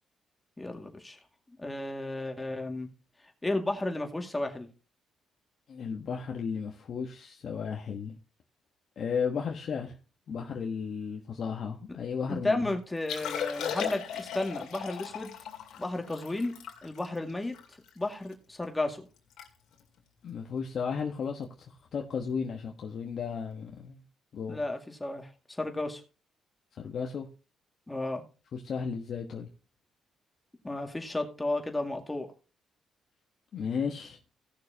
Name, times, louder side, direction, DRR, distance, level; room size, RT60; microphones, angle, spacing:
voice 1, 0.6-1.2 1.6-2.9 3.4-4.7 12.3-15.3 15.8-16.5 16.8-17.6 18.0-19.0 24.5-26.0 27.9-28.2 30.6-32.3, left 2 dB, 15° left, 4 dB, 2.1 m, -33 dB
voice 2, 5.7-8.1 9.0-9.9 10.3-12.6 20.2-21.5 21.9-24.0 24.3-24.6 26.8-27.3 28.5-29.5 33.5-34.2, left 6 dB, 60° left, 1 dB, 1.2 m, -34 dB
Liquid, 13.0-18.3 18.8-18.9 19.2-19.5 19.7-20.0 20.6-20.8 22.3-22.4, left 8 dB, 80° left, 2.2 m, -37 dB
17.0 x 6.6 x 2.8 m, 0.33 s
cardioid pair, 90°, 0 cm